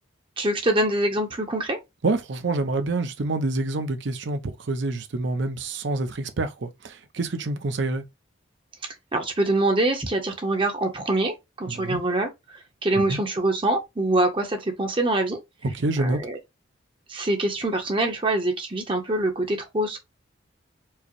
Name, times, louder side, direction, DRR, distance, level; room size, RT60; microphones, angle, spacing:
voice 1, 0.4-1.8 8.8-15.4 16.0-16.4 17.1-20.0, right 2 dB, 25° right, 0.6 m, -25 dB
voice 2, 2.0-8.0 11.7-12.0 12.9-13.2 15.6-16.2, right 2 dB, 65° right, 0.6 m, -27 dB
4.6 x 2.0 x 2.9 m
head